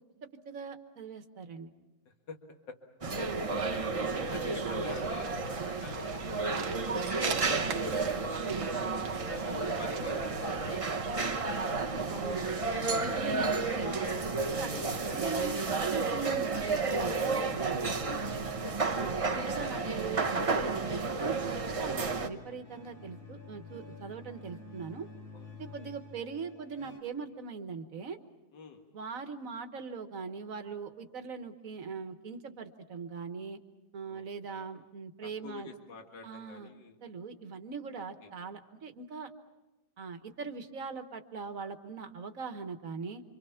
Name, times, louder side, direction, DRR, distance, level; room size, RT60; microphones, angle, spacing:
voice 1, 0.2-1.7 3.2-3.4 4.1-4.6 8.3-8.6 12.1-12.4 12.9-13.9 14.6-14.8 15.1-17.2 17.5-17.8 19.0-21.5 21.8-25.1 25.6-28.2 28.9-33.6 33.9-35.7 36.2-36.7 37.0-39.3 40.0-43.2, right 5 dB, 45° right, 7 dB, 1.5 m, -41 dB
voice 2, 2.1-2.4 2.7-2.8 3.5-3.9 4.3-8.2 8.7-12.9 13.3-14.3 14.6-15.8 18.6-19.0 25.3-25.9 28.5-28.8 34.0-34.7 35.2-37.0 38.0-38.3, left 4 dB, 60° left, 3 dB, 2.4 m, -47 dB
sound 1, 3.0-22.3, right 4 dB, 30° right, 0.6 m, -32 dB
sound 2, 4.4-12.7, right 7 dB, 75° right, 1.8 m, -46 dB
sound 3, 16.9-27.0, left 1 dB, 85° left, 4.6 m, -50 dB
28.5 x 25.5 x 5.8 m, 1.0 s
omnidirectional pair, 2.2 m